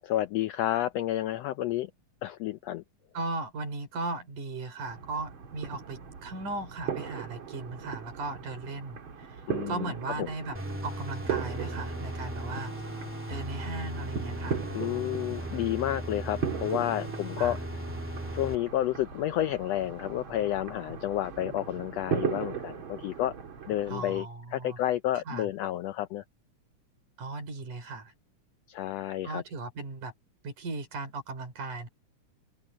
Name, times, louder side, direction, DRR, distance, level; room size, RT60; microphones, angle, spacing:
voice 1, 0.0-1.9 2.2-2.8 9.5-10.3 14.7-17.6 18.3-23.4 23.7-26.2 28.7-29.4, left 13 dB, 80° left, 1.5 m, -30 dB
voice 2, 3.1-9.4 9.7-10.6 10.8-12.7 13.3-14.6 17.4-17.6 23.9-24.8 25.3-25.5 27.2-28.1 29.2-30.1 30.4-31.9, right 3 dB, 80° right, 5.4 m, -37 dB
sound 1, 4.9-24.2, right 8 dB, 45° right, 2.6 m, -38 dB
sound 2, 10.5-18.6, equal, 5° right, 2.5 m, -37 dB
omnidirectional pair, 3.5 m